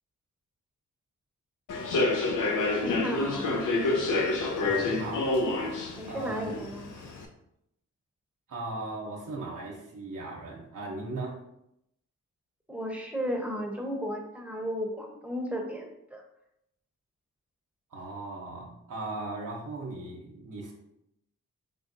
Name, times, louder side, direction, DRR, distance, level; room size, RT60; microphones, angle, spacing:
Human voice / Subway metro underground, 1.7-7.2, left 2 dB, 75° left, 0.6 m, -28 dB
voice 1, 2.8-3.5 6.0-6.9 12.7-16.2, equal, 5° right, 0 dB, 1.0 m, -34 dB
voice 2, 4.6-5.3 6.1-6.7 8.5-11.4 17.9-20.7, right 2 dB, 75° right, -2 dB, 0.9 m, -38 dB
3.7 x 3.3 x 2.6 m, 0.78 s
cardioid pair, 45°, 32 cm